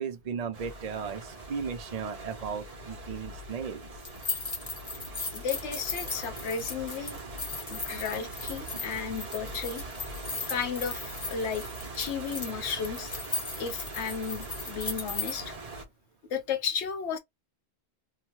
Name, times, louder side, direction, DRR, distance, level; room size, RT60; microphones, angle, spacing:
voice 1, 0.0-3.9, right 6 dB, 55° right, 0.4 m, -36 dB
sound 1, 0.5-15.8, right 2 dB, 40° right, 0.8 m, -42 dB
sound 2, 4.0-15.3, left 3 dB, 30° left, 0.8 m, -37 dB
voice 2, 5.3-7.2 7.7-9.8 10.5-11.6 11.9-13.1 13.6-15.5 16.3-17.2, left 6 dB, 90° left, 1.0 m, -33 dB
2.8 x 2.1 x 3.0 m
omnidirectional pair, 1.1 m